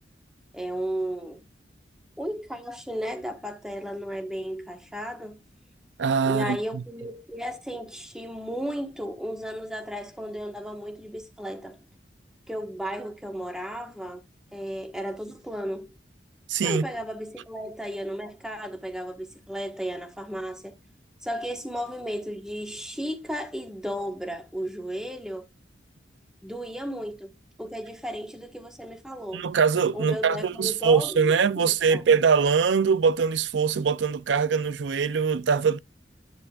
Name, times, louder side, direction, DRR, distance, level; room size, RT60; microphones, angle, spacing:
voice 1, 0.5-1.4 2.2-5.4 6.2-11.8 12.5-14.2 14.5-15.9 16.6-20.8 21.2-25.4 26.4-27.3 27.6-29.4 29.9-32.0, equal, 5° right, 1.3 m, -34 dB
voice 2, 6.0-6.8 16.5-16.9 29.3-35.8, right 6 dB, 90° right, 0.5 m, -23 dB
9.6 x 8.0 x 2.4 m
head